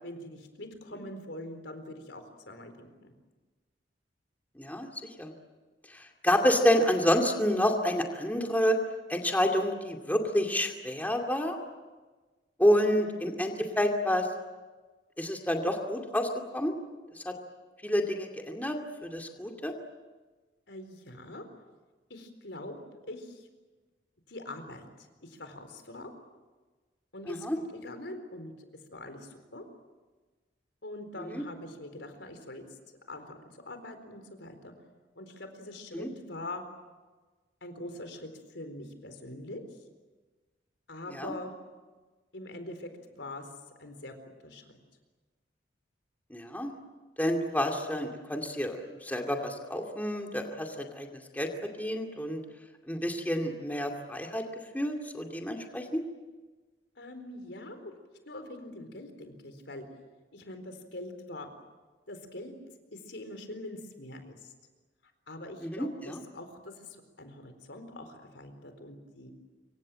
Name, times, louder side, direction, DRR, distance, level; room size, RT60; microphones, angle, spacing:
voice 1, 0.0-3.1 12.9-13.5 20.7-21.4 22.1-22.8 23.0-23.5 24.3-26.1 27.1-27.5 27.7-28.5 28.9-29.6 30.8-32.6 33.1-34.7 35.1-36.6 37.6-39.6 40.9-41.5 42.3-43.5 43.8-44.6 57.0-57.9 58.3-59.8 60.3-61.5 62.1-62.5 62.9-64.5 65.3-69.3, left 1 dB, 80° left, 7 dB, 4.2 m, -43 dB
voice 2, 4.6-4.9 5.2-5.3 5.9-8.8 9.1-11.6 12.6-14.3 15.2-16.7 17.3-17.4 17.8-19.7 27.3-27.6 31.3-31.4 35.9-36.1 41.1-41.3 46.3-46.7 47.2-51.5 51.8-52.4 52.9-54.4 54.7-56.0 65.6-66.2, equal, 10° left, 2 dB, 2.4 m, -29 dB
26.5 x 24.5 x 7.6 m, 1.3 s
head